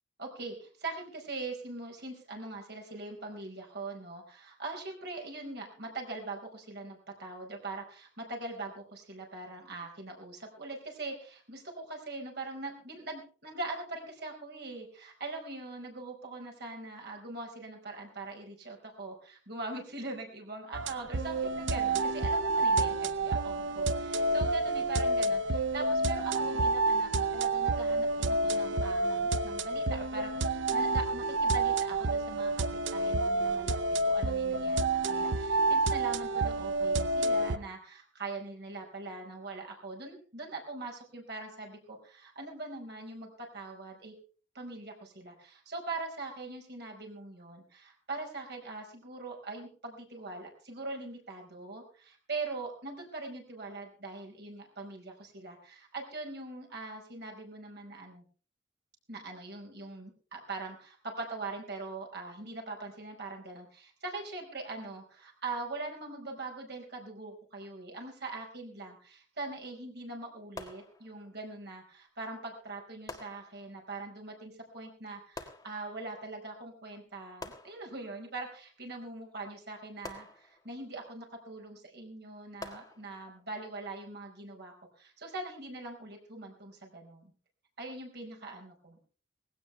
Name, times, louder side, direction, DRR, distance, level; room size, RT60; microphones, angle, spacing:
voice 1, 0.2-44.1 44.5-58.2 59.1-87.3 87.8-89.0, right 3 dB, 60° right, 2 dB, 4.9 m, -42 dB
sound 1, 20.7-37.6, right 2 dB, 85° right, 0.8 m, -29 dB
sound 2, 70.6-71.5 73.1-74.0 75.4-76.2 77.4-78.3 80.0-81.0 82.6-83.5, left 2 dB, 20° left, 1.7 m, -48 dB
19.0 x 16.5 x 3.4 m, 0.41 s
head